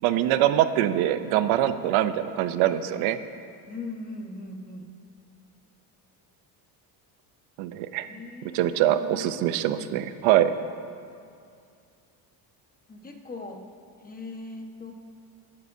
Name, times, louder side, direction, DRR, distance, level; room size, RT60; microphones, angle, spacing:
voice 1, 0.0-3.2 7.6-8.1 8.5-10.5, right 12 dB, 75° right, 11 dB, 0.8 m, -23 dB
voice 2, 3.7-4.8 8.0-9.5 12.9-13.6 14.0-14.9, left 2 dB, 20° left, 2 dB, 1.3 m, -39 dB
24.0 x 9.7 x 2.7 m, 2.4 s
cardioid pair, 115°, 47 cm